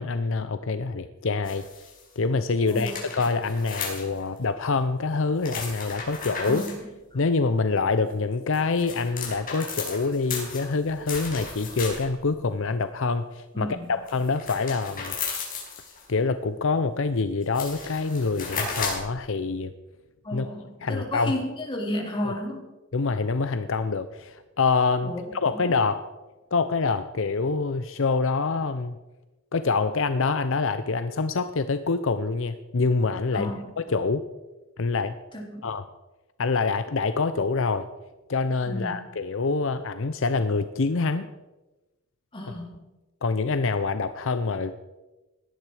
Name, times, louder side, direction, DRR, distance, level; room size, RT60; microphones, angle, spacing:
voice 1, 0.0-1.7 2.2-6.6 7.1-15.2 16.1-19.7 20.3-20.5 20.8-21.3 22.2-22.3 22.9-26.1 26.5-28.9 29.5-33.5 33.9-34.2 34.8-35.2 35.6-35.8 36.4-37.9 38.3-41.3 43.2-44.7, left 4 dB, 65° left, 11 dB, 0.7 m, -26 dB
sound 1, 1.4-2.0 2.7-4.4 5.4-6.8 8.3-12.2 14.1-16.0 17.0-17.1 17.4-19.1, left 5 dB, 45° left, 5.3 m, -35 dB
voice 2, 2.7-3.0 6.4-7.2 13.5-13.9 20.2-22.7 25.0-25.9 33.3-33.7 35.3-35.6 38.6-39.0 42.3-42.8, left 1 dB, 25° left, -1 dB, 3.8 m, -33 dB
17.5 x 12.0 x 4.9 m, 1.1 s
head